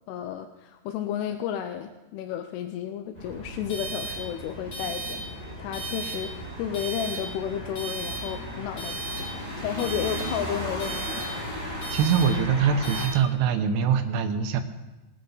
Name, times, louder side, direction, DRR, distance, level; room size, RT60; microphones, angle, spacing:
voice 1, 0.1-5.3 5.6-11.6, left 9 dB, 90° left, 7 dB, 2.7 m, -33 dB
sound 1, 3.1-13.1, right 1 dB, 20° left, 5.7 m, -34 dB
voice 2, 11.9-14.6, right 7 dB, 85° right, 7 dB, 2.9 m, -23 dB
19.5 x 9.5 x 3.9 m, 1.1 s
omnidirectional pair, 4.6 m